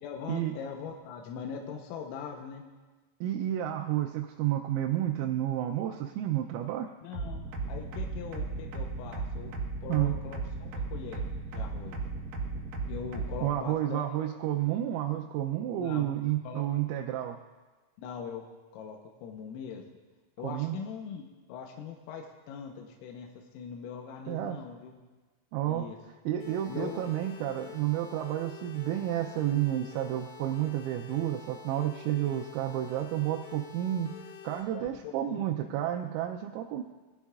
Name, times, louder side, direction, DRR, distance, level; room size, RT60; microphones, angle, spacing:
voice 1, 0.0-2.6 7.0-9.5 9.8-11.2 11.5-12.0 12.9-14.1 15.8-16.6 18.0-18.4 18.7-19.8 20.4-25.0 25.7-26.0 26.7-27.1 32.3-32.5 34.7-35.5, left 6 dB, 85° left, 1 dB, 3.5 m, -41 dB
voice 2, 3.2-6.9 9.9-10.2 13.4-17.4 20.4-20.8 24.3-24.6 25.5-25.9 26.3-34.1 34.4-36.8, right 12 dB, 90° right, 2 dB, 3.3 m, -31 dB
sound 1, 7.1-13.5, right 4 dB, 70° right, 2.0 m, -35 dB
sound 2, 26.4-34.6, left 9 dB, 70° left, 4.0 m, -47 dB
20.0 x 13.0 x 2.4 m, 1.3 s
omnidirectional pair, 6.0 m